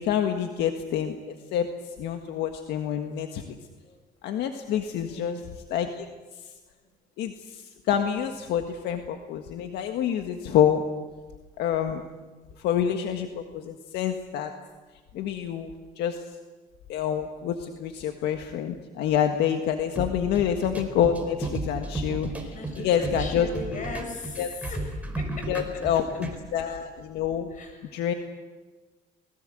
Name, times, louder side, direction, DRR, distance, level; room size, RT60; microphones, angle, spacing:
voice 1, 0.0-3.6 4.2-5.4 5.7-6.1 7.2-10.8 11.6-12.0 12.6-14.5 15.1-16.2 16.9-22.5 22.8-23.5 24.4-24.5 25.5-27.5 27.9-28.1, left 9 dB, 80° left, 6 dB, 1.7 m, -27 dB
voice 2, 5.0-5.5 22.5-26.0 27.5-28.0, left 2 dB, 50° left, 5 dB, 6.9 m, -39 dB
sound 1, 20.0-26.4, right 2 dB, 10° right, 4.3 m, -34 dB
28.0 x 20.5 x 7.8 m, 1.3 s
cardioid pair, 110°, 17 cm